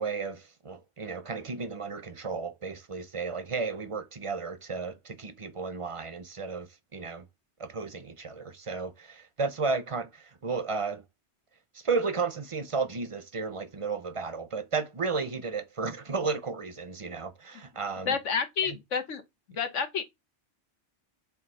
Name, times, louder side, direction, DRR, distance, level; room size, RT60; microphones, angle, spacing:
voice 1, 0.0-7.2 7.6-11.0 11.8-18.2 18.6-18.8, right 4 dB, 35° right, 0.7 m, -33 dB
voice 2, 18.0-19.2 19.5-20.0, left 6 dB, 80° left, 1.4 m, -29 dB
7.9 x 2.8 x 5.5 m
omnidirectional pair, 1.2 m